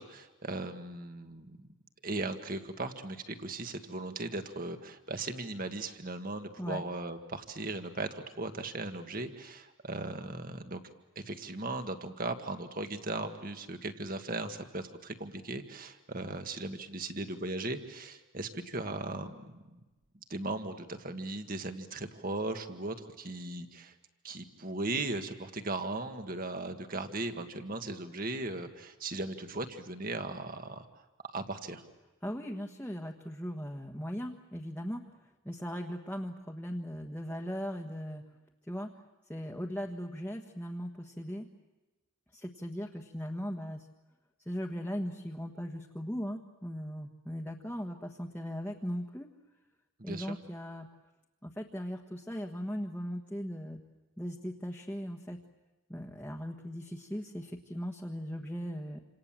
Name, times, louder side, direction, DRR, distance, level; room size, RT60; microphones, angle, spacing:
voice 1, 0.0-1.7 2.0-10.8 11.2-19.8 20.3-23.9 24.2-30.8 31.3-31.8 50.0-50.4, right 2 dB, 40° right, 7 dB, 1.8 m, -38 dB
voice 2, 32.2-38.2 38.7-39.0 39.3-41.4 42.3-43.9 44.4-49.3 50.0-50.9 51.4-53.8 54.2-55.4 55.9-59.0, equal, 10° left, 1 dB, 1.4 m, -38 dB
28.5 x 27.0 x 7.6 m, 1.1 s
head